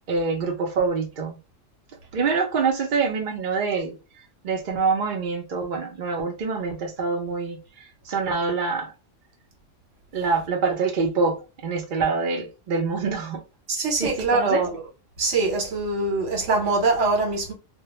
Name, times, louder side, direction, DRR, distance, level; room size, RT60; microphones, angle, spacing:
voice 1, 0.1-1.4 2.1-4.0 4.4-7.6 8.1-8.9 10.1-13.4 14.0-14.6, right 4 dB, 50° right, 0.6 m, -25 dB
voice 2, 13.7-14.8 15.2-17.5, right 3 dB, 70° right, 1.2 m, -23 dB
2.2 x 2.1 x 2.8 m
omnidirectional pair, 1.3 m